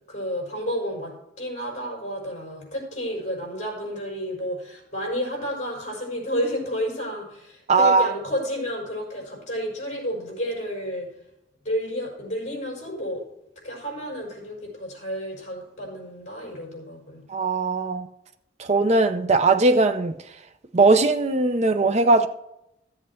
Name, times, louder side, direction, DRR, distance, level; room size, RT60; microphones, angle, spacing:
voice 1, 0.1-11.1 11.6-13.3 13.6-17.2, equal, 40° left, 5.3 m, -31 dB
voice 2, 7.7-8.1 17.3-18.1 18.6-20.1 20.7-22.3, right 3 dB, 40° right, 0.6 m, -19 dB
14.0 x 7.6 x 4.4 m
head